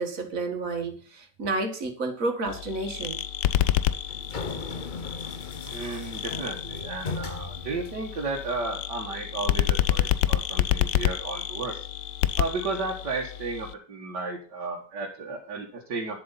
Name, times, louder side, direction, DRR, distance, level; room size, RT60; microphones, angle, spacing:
voice 1, 0.0-3.2, right 3 dB, 50° right, 5 dB, 2.2 m, -30 dB
sound 1, 2.5-13.7, left 12 dB, 90° left, 1.3 m, -29 dB
sound 2, 3.8-8.6, left 4 dB, 35° left, 0.9 m, -38 dB
voice 2, 5.6-11.8 12.4-16.2, right 3 dB, 75° right, -2 dB, 2.1 m, -33 dB
10.5 x 7.7 x 5.6 m, 0.43 s
omnidirectional pair, 1.9 m